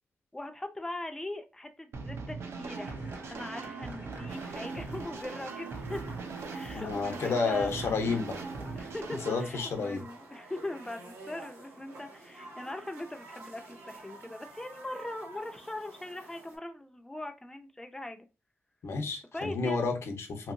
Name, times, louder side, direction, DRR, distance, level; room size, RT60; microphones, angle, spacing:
voice 1, 0.3-2.9 3.3-6.0 6.5-7.8 8.7-18.3 19.3-19.8, left 1 dB, 10° left, 0.4 m, -40 dB
sound 1, 1.9-9.5, right 4 dB, 65° right, 0.5 m, -41 dB
sound 2, 2.7-9.4, right 3 dB, 50° right, 1.1 m, -46 dB
sound 3, 4.3-16.6, right 2 dB, 90° right, 1.4 m, -50 dB
voice 2, 6.7-8.4 9.3-10.0 18.8-20.5, left 4 dB, 70° left, 0.7 m, -31 dB
2.9 x 2.8 x 2.5 m
wide cardioid pair, 135°, 5 cm